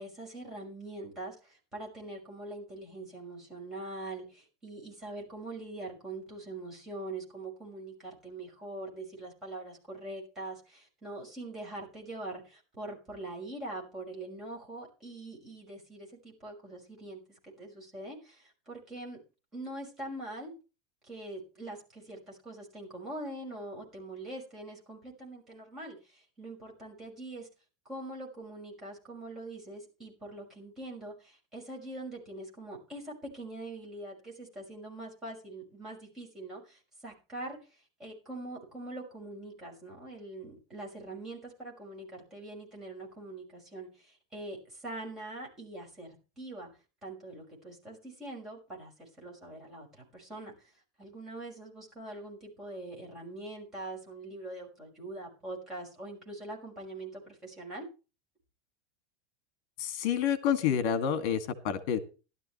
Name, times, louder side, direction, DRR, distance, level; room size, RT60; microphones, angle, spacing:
voice 1, 0.0-17.2 17.6-19.2 19.5-20.5 21.0-27.5 27.8-46.7 47.0-50.7 51.0-57.9, right 2 dB, 15° right, -2 dB, 5.7 m, -43 dB
voice 2, 59.8-62.0, left 8 dB, 45° left, 11 dB, 2.0 m, -28 dB
16.0 x 12.5 x 3.1 m, 0.33 s
supercardioid pair, 175°, 2 cm